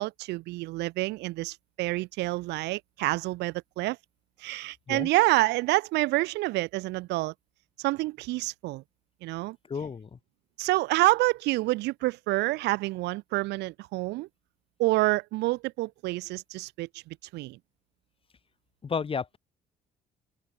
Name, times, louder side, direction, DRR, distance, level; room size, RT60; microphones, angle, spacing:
voice 1, 0.0-4.0 4.4-7.3 7.8-8.8 9.2-9.6 10.6-14.3 14.8-17.6, right 20 dB, 85° right, 1.4 m, -28 dB
voice 2, 9.7-10.2 18.8-19.4, left 6 dB, 30° left, 5.4 m, -32 dB
cardioid pair, 110°, 17 cm